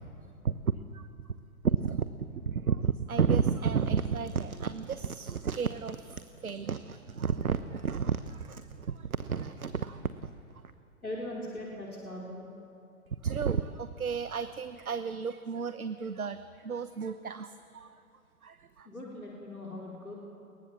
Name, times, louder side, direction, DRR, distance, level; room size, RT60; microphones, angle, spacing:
voice 1, 1.6-10.3 13.2-17.9 18.4-18.9, right 6 dB, 80° right, 11 dB, 1.1 m, -32 dB
voice 2, 11.0-12.5 18.8-20.2, left 1 dB, 90° left, -3 dB, 4.7 m, -40 dB
29.0 x 22.5 x 7.2 m, 2.6 s
figure-of-eight pair, 115°, 42 cm